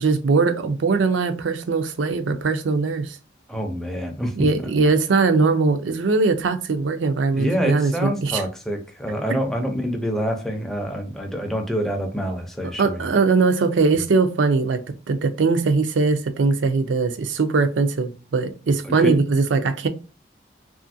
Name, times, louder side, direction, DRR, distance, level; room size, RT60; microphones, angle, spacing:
voice 1, 0.0-3.2 4.4-8.4 12.8-19.9, right 4 dB, 90° right, 0.5 m, -21 dB
voice 2, 3.5-4.5 7.3-13.1 18.8-19.2, equal, ahead, 0.4 m, -26 dB
3.0 x 2.4 x 2.5 m
head